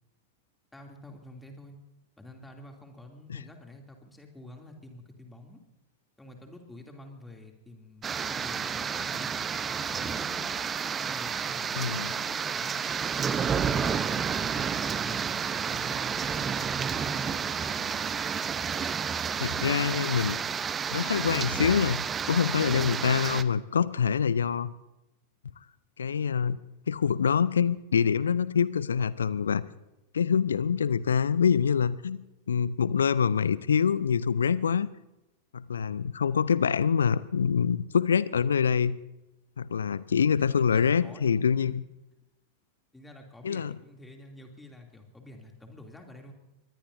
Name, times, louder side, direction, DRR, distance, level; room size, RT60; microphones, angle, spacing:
voice 1, 0.7-1.8 2.2-5.6 6.2-10.5 11.0-12.9 13.5-15.2 15.8-18.0 40.6-41.8 42.9-46.3, left 1 dB, 5° left, 2 dB, 2.8 m, -49 dB
sound 1, 8.0-23.4, right 6 dB, 20° right, 0.7 m, -30 dB
voice 2, 11.8-12.1 19.4-20.4 20.9-24.7 26.0-26.6 26.9-29.6 30.1-32.2 32.5-34.9 35.5-39.0 39.6-41.8 43.4-43.7, left 7 dB, 70° left, 19 dB, 0.6 m, -25 dB
23.5 x 20.5 x 2.7 m, 0.93 s
figure-of-eight pair, 90°, 0 cm